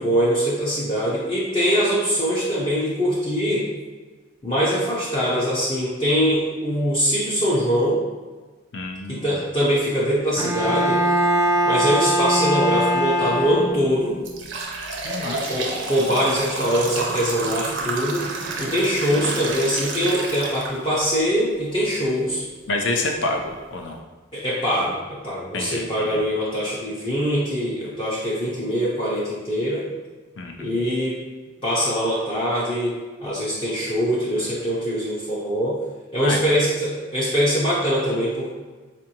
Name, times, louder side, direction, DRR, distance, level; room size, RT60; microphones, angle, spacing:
voice 1, 0.0-3.7 4.4-8.0 9.1-11.0 11.6-14.2 15.5-18.3 18.6-22.4 24.3-29.9 30.6-31.2 31.6-32.9 33.2-35.8 36.1-38.5, equal, 25° left, -8 dB, 0.6 m, -23 dB
voice 2, 8.7-9.4 15.0-15.5 22.7-24.0 25.5-26.2 30.4-30.5 36.2-36.4, left 2 dB, 75° left, 3 dB, 0.5 m, -28 dB
Bowed string instrument, 10.4-14.1, equal, 20° right, 0.5 m, -21 dB
sound 1, 13.3-13.5 14.0-21.1 21.6-21.7 22.5-22.6 23.1-23.2 23.7-23.9, right 3 dB, 75° right, 0.6 m, -30 dB
4.4 x 2.5 x 2.8 m, 1.3 s
head